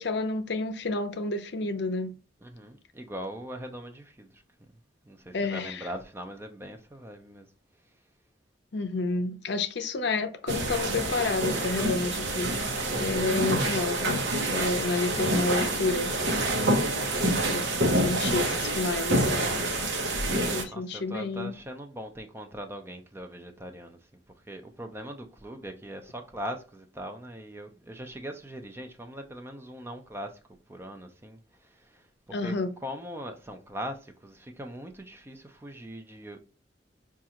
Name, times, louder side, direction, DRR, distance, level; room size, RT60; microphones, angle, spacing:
voice 1, 0.0-2.1 5.3-5.9 8.7-12.6 13.0-14.2 14.5-16.1 17.5-19.9 20.5-21.5 32.3-32.8, left 3 dB, 65° left, 0.5 m, -30 dB
voice 2, 2.4-4.7 5.1-7.5 20.7-24.0 24.5-30.4 30.7-32.6 32.8-36.4, equal, 15° right, 0.4 m, -41 dB
sound 1, 10.5-20.6, right 1 dB, 85° right, 0.8 m, -27 dB
5.2 x 2.4 x 2.9 m
head